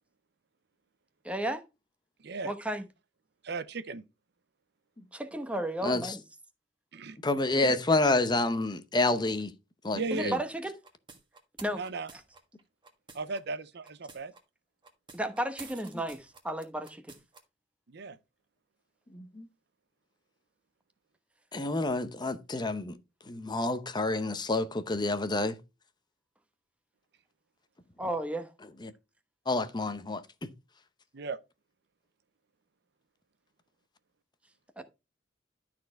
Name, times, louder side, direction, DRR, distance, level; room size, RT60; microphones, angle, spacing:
voice 1, 1.2-1.6 2.4-2.9 5.1-6.2 7.6-7.7 10.1-10.7 11.6-11.8 12.1-12.2 15.1-17.2 28.0-28.5 34.8-34.9, right 1 dB, 5° right, 1.0 m, -33 dB
voice 2, 3.4-4.0 6.9-7.2 9.9-10.3 11.8-12.1 13.1-14.3 17.9-18.2 31.1-31.4, right 3 dB, 65° right, 0.6 m, -36 dB
voice 3, 5.8-6.1 7.2-9.5 9.8-10.4 19.1-19.5 21.5-22.9 23.3-25.6 28.8-28.9 29.5-30.2, left 2 dB, 25° left, 0.8 m, -28 dB
sound 1, 10.8-13.4 13.8-14.4 14.8-17.4, right 4 dB, 25° right, 1.5 m, -50 dB
12.0 x 4.4 x 4.5 m
head